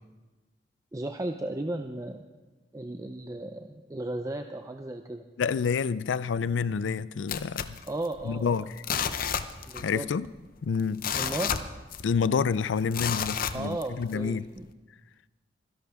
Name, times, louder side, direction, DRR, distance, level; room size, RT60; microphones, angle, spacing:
voice 1, 0.9-2.2 2.7-5.2 7.9-8.7 9.7-10.1 11.2-11.5 13.5-14.7, right 1 dB, 20° right, 0.5 m, -35 dB
voice 2, 5.4-7.8 8.2-8.8 9.8-10.3 10.6-11.1 12.0-14.5, left 6 dB, 90° left, 0.4 m, -28 dB
sound 1, 7.3-8.4 8.8-10.0 10.2-10.3 10.8-12.3 12.9-14.1 14.6-14.7, left 7 dB, 50° left, 0.7 m, -31 dB
25.0 x 11.0 x 3.6 m
head